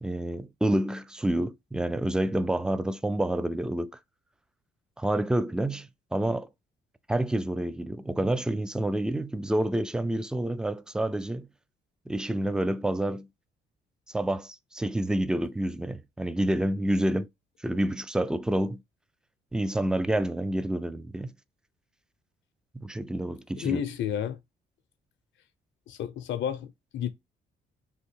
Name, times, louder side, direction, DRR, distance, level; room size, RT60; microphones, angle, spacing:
voice 1, 0.0-3.9 5.0-6.5 7.1-11.5 12.1-13.3 14.1-17.3 17.6-18.8 19.5-21.3 22.7-23.8, right 1 dB, 5° right, 0.3 m, -28 dB
voice 2, 23.6-24.4 25.9-27.1, left 9 dB, 70° left, 0.6 m, -31 dB
3.5 x 2.7 x 4.4 m
cardioid pair, 90°, 20 cm